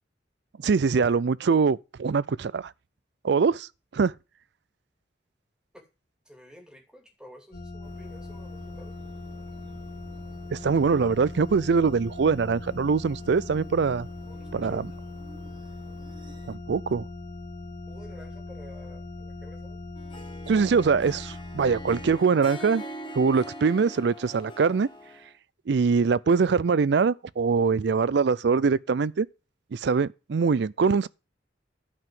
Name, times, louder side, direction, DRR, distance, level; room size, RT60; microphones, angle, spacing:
voice 1, 0.6-2.7 3.2-4.1 10.5-14.1 14.5-14.9 16.5-17.0 20.5-22.8 23.2-24.9 25.7-29.3 29.7-31.1, right 5 dB, 65° right, 0.4 m, -23 dB
voice 2, 6.2-9.0 14.3-14.9 17.9-19.8, equal, 5° right, 2.6 m, -49 dB
sound 1, 7.5-22.2, left 2 dB, 50° left, 3.0 m, -40 dB
sound 2, 7.8-16.6, right 1 dB, 25° right, 1.5 m, -53 dB
Harp, 20.0-25.3, equal, 30° left, 1.8 m, -42 dB
11.0 x 4.9 x 7.5 m
head